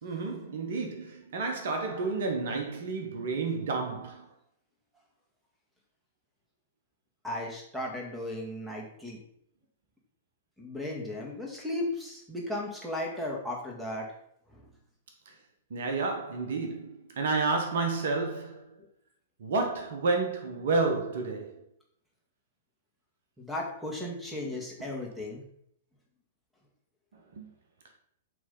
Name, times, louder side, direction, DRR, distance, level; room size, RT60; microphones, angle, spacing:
voice 1, 0.0-4.3 15.7-18.8 19.4-21.6 27.4-27.5, right 3 dB, 55° right, 1.2 m, -30 dB
voice 2, 7.2-9.2 10.6-14.1 14.5-14.6 23.4-25.4, left 1 dB, ahead, 1.9 m, -35 dB
7.9 x 3.5 x 5.5 m
figure-of-eight pair, 110°, 0 cm